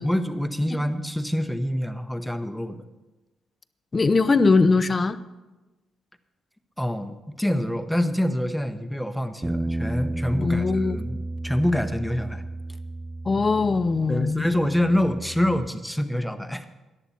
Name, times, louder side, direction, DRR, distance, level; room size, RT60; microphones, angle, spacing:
voice 1, 0.0-2.8 6.8-11.2 11.4-12.4 14.1-16.8, left 1 dB, ahead, 9 dB, 0.9 m, -26 dB
voice 2, 3.9-5.2 10.3-11.0 13.3-14.5, left 4 dB, 30° left, 13 dB, 0.6 m, -21 dB
sound 1, 9.4-15.7, right 2 dB, 15° right, 0.3 m, -33 dB
14.0 x 11.0 x 4.3 m, 1.1 s
cardioid pair, 90°, 0 cm